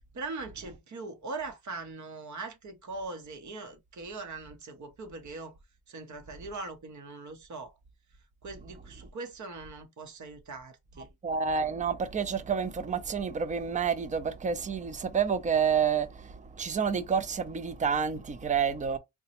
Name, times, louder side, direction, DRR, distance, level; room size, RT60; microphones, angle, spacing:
voice 1, 0.1-5.6 5.9-7.7 8.4-11.1, right 3 dB, 55° right, 0.8 m, -41 dB
voice 2, 11.2-19.0, right 6 dB, 20° right, 0.4 m, -29 dB
3.9 x 2.2 x 2.8 m
cardioid pair, 115°, 36 cm